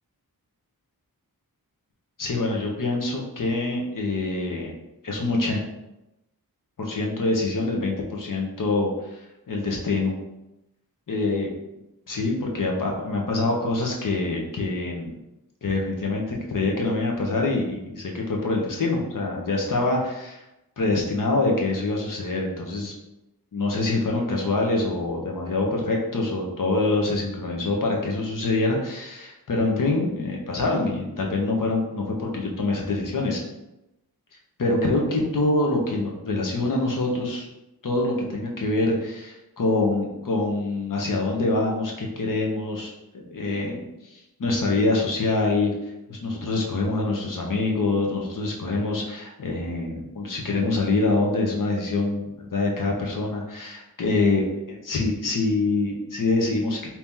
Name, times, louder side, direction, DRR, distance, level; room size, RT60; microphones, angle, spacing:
voice 1, 2.2-4.7 5.0-5.6 6.8-9.2 9.5-10.2 11.1-11.5 12.1-15.1 15.6-20.4 20.8-22.9 23.5-33.4 34.6-37.5 37.8-43.8 44.1-45.7 46.1-56.9, left 2 dB, 55° left, 0 dB, 0.9 m, -25 dB
2.9 x 2.9 x 3.6 m, 0.92 s
wide cardioid pair, 60°, 37 cm